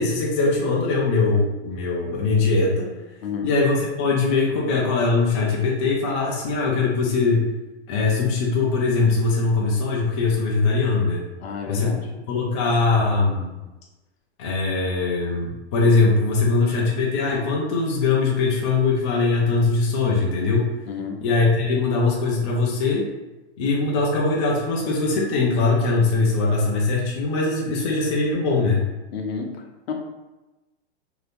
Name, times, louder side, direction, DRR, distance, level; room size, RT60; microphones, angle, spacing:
voice 1, 0.0-2.9 3.4-7.5 7.9-11.2 11.7-11.9 12.3-13.5 14.4-20.7 21.2-23.1 23.6-28.8, left 3 dB, 25° left, -3 dB, 0.4 m, -21 dB
voice 2, 11.4-12.1 20.9-21.2 29.1-29.9, left 5 dB, 65° left, 2 dB, 0.7 m, -31 dB
2.7 x 2.5 x 3.4 m, 1.1 s
supercardioid pair, 155°, 34 cm